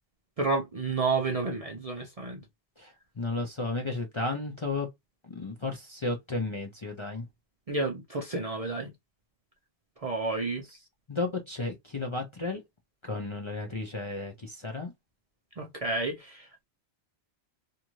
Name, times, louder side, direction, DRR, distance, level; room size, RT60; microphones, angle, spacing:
voice 1, 0.4-2.4 7.7-8.9 10.0-10.6 15.6-16.6, right 3 dB, 45° right, 0.5 m, -30 dB
voice 2, 2.8-4.9 5.2-7.3 11.1-12.6 13.0-14.9, left 3 dB, 35° left, 0.5 m, -33 dB
2.7 x 2.5 x 2.9 m
omnidirectional pair, 1.1 m